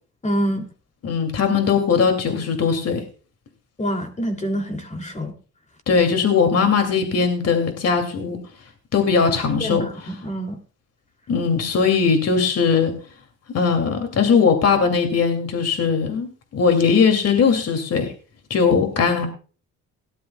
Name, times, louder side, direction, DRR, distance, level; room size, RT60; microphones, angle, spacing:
voice 1, 0.2-0.7 3.8-5.3 9.6-10.6, equal, 25° left, 5 dB, 2.7 m, -26 dB
voice 2, 1.0-3.0 5.9-8.4 8.9-9.9 11.3-12.9 13.5-18.1 18.5-19.3, left 5 dB, 55° left, 5 dB, 2.5 m, -19 dB
18.5 x 11.5 x 2.3 m, 0.37 s
cardioid pair, 90°, 30 cm